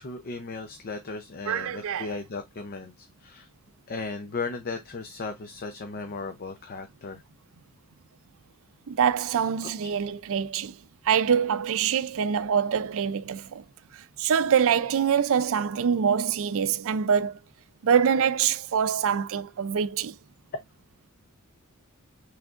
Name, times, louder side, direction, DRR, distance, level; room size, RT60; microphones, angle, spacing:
voice 1, 0.0-3.5 3.9-7.2 9.6-9.7, left 4 dB, 45° left, 0.6 m, -36 dB
voice 2, 1.5-2.1 8.9-10.8 11.0-13.6 14.2-17.4 17.8-20.2, right 7 dB, 65° right, 0.4 m, -24 dB
6.1 x 3.3 x 2.4 m
head